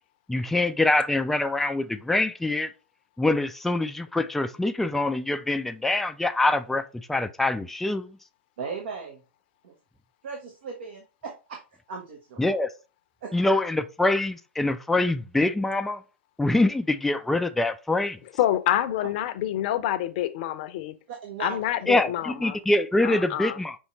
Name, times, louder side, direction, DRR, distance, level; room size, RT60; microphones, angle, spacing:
voice 1, 0.3-2.7 3.2-8.2 12.4-12.7 13.3-16.0 16.4-18.2 21.9-23.8, left 2 dB, 5° left, 0.3 m, -24 dB
voice 2, 8.6-9.2 9.6-9.7 10.2-11.6 11.9-12.4 13.2-13.4 21.1-21.6, right 5 dB, 65° right, 1.0 m, -37 dB
voice 3, 18.4-21.0 21.4-22.6 23.0-23.6, left 12 dB, 50° left, 0.6 m, -27 dB
5.4 x 3.1 x 2.9 m
hypercardioid pair, 105°, 6 cm